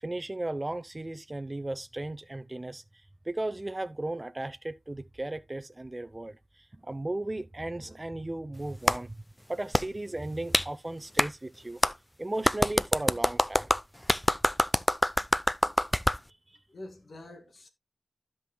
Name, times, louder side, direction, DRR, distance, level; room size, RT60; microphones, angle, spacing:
voice 1, 0.0-2.8 3.3-6.4 6.8-9.2 9.5-11.8 12.2-13.7, right 2 dB, 30° right, 0.7 m, -35 dB
Clapping, 8.9-9.0 9.7-9.9 10.5-10.7 11.2-11.3 11.8-11.9 12.4-16.2, left 1 dB, 15° left, 0.5 m, -25 dB
voice 2, 16.7-17.7, left 1 dB, 70° left, 2.1 m, -46 dB
15.5 x 5.5 x 2.2 m
cardioid pair, 40°, 0 cm